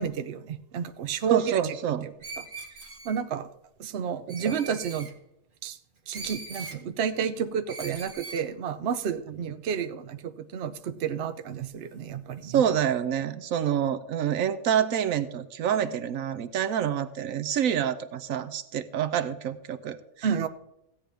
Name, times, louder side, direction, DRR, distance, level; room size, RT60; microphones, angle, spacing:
voice 1, 0.0-1.6 3.0-3.5 3.8-5.1 5.6-5.8 6.1-12.6 20.2-20.5, right 7 dB, 55° right, 10 dB, 0.9 m, -30 dB
voice 2, 1.3-2.1 4.3-4.5 9.3-9.4 12.4-20.5, right 9 dB, 80° right, 12 dB, 1.1 m, -27 dB
Screech, 2.2-3.2 4.3-5.1 6.1-6.8 7.7-8.4, right 3 dB, 40° right, 1.2 m, -41 dB
16.0 x 9.0 x 3.5 m, 0.83 s
omnidirectional pair, 1.4 m